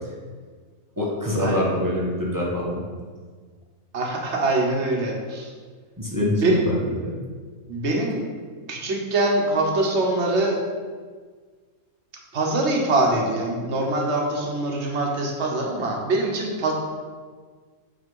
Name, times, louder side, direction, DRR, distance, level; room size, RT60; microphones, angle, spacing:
voice 1, 1.0-2.8 6.0-7.2, left 1 dB, 15° right, -4 dB, 1.0 m, -25 dB
voice 2, 3.9-5.5 6.4-6.6 7.7-8.2 8.7-10.6 12.3-16.7, right 2 dB, 55° right, 0 dB, 1.4 m, -23 dB
6.5 x 4.2 x 5.4 m, 1.5 s
omnidirectional pair, 1.5 m